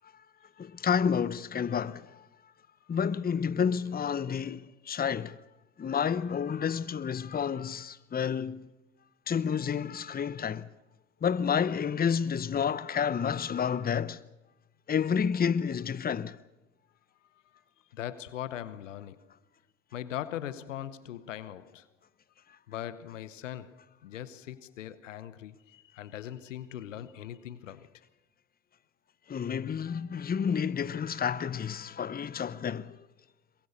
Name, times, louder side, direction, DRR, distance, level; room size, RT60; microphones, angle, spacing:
voice 1, 0.6-2.0 2.9-5.4 5.8-8.7 9.3-10.7 11.2-14.2 14.9-16.4 29.3-33.0, left 7 dB, 25° left, 0.8 m, -30 dB
voice 2, 17.9-19.3 19.9-21.9 22.7-27.9, left 11 dB, 90° left, 1.0 m, -40 dB
22.5 x 22.5 x 6.6 m
hypercardioid pair, 65°, 36 cm